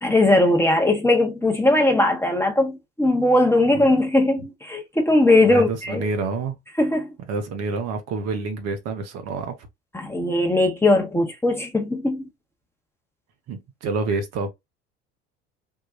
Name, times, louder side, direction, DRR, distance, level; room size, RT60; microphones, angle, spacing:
voice 1, 0.0-6.1 6.8-7.1 9.9-12.2, left 2 dB, 5° left, 0.8 m, -19 dB
voice 2, 5.4-6.6 7.3-9.5 13.5-14.5, right 4 dB, 50° right, 0.9 m, -28 dB
3.6 x 2.2 x 2.7 m
figure-of-eight pair, 65°, 34 cm